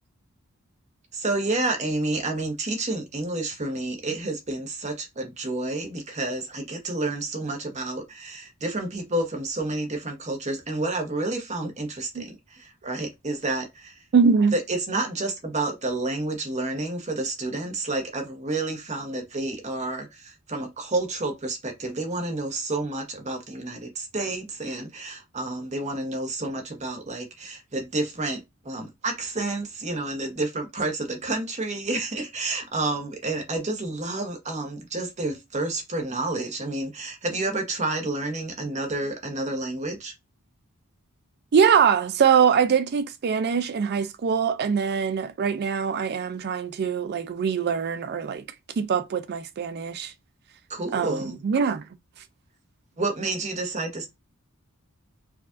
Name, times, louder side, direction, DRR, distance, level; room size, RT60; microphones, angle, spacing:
voice 1, 1.1-14.0 14.5-40.1 50.7-51.4 53.0-54.1, right 2 dB, 30° right, 1.0 m, -30 dB
voice 2, 14.1-14.5 41.5-48.4 48.8-50.1 50.9-51.8, right 6 dB, 50° right, 0.4 m, -23 dB
4.7 x 2.5 x 2.4 m
head